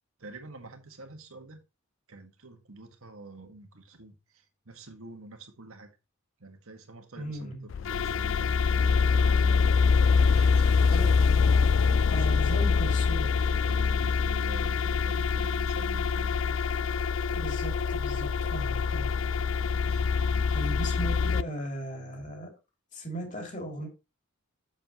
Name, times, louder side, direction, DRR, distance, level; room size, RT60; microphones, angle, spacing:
voice 1, 0.2-1.6 2.1-5.9 6.4-9.6 10.1-11.1 11.8-12.8 13.1-16.5 19.9-20.0 20.7-20.9, right 2 dB, 85° right, 1.7 m, -47 dB
voice 2, 7.2-7.7 10.9-11.1 12.1-13.3 17.3-19.1 20.5-22.5 22.9-23.9, right 1 dB, 35° left, 2.7 m, -37 dB
sound 1, 7.7-21.4, left 5 dB, 65° left, 0.3 m, -25 dB
7.5 x 7.4 x 3.0 m
head